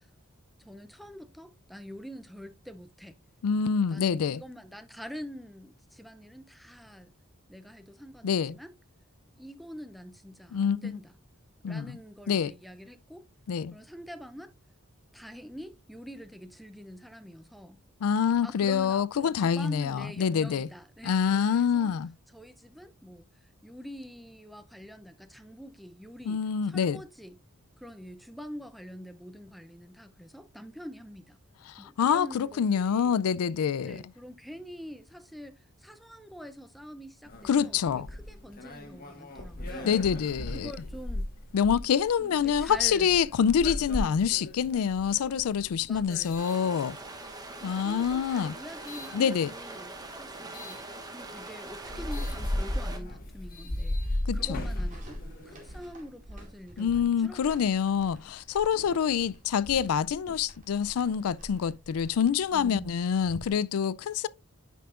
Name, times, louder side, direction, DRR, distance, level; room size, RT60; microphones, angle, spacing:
voice 1, 0.6-3.2 3.9-7.1 7.5-8.7 9.4-11.1 11.7-13.3 13.7-14.5 15.1-17.8 18.4-21.9 22.3-27.4 27.8-31.4 31.8-33.2 33.8-40.0 40.5-41.3 42.2-43.2 45.9-46.5 47.8-57.8 62.5-63.1, equal, ahead, 0.4 m, -45 dB
voice 2, 3.4-4.4 8.2-8.6 10.5-11.0 11.6-12.0 12.3-12.5 13.5-13.7 18.0-20.7 21.0-22.1 26.3-27.0 31.7-34.0 37.5-38.1 39.8-40.7 41.5-47.0 47.6-48.6 49.1-49.5 54.3-54.6 56.8-64.3, left 7 dB, 80° left, 0.4 m, -26 dB
sound 1, 37.2-47.3 47.9-49.2 50.5-50.8 51.3-51.4 51.7-55.9, left 1 dB, 40° left, 1.4 m, -36 dB
sound 2, 46.4-53.0, right 2 dB, 15° right, 0.9 m, -43 dB
sound 3, 54.9-63.5, equal, 35° right, 2.2 m, -49 dB
10.0 x 5.5 x 2.4 m
head